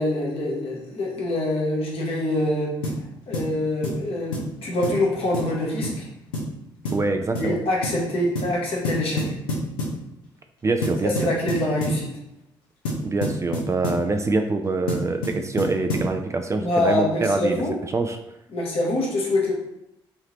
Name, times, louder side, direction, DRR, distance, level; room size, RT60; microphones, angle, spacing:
voice 1, 0.0-2.7 3.3-6.1 7.4-9.2 11.0-12.1 16.6-17.8 18.5-19.5, left 1 dB, 55° left, -2 dB, 1.0 m, -25 dB
sound 1, 2.8-3.0 3.3-3.5 3.8-4.0 4.3-4.5 4.8-5.0 5.3-5.5 5.8-6.0 6.3-6.5 6.8-7.1 7.3-7.5 7.8-8.0 8.4-8.6 8.8-10.0 10.8-12.0 12.8-14.0 14.9-16.1, left 1 dB, 85° left, 0.7 m, -28 dB
voice 2, 6.9-7.6 10.6-11.1 13.0-17.6 17.9-18.2, right 3 dB, 25° right, 6 dB, 0.3 m, -24 dB
3.2 x 2.8 x 2.8 m, 0.86 s
hypercardioid pair, 40°, 11 cm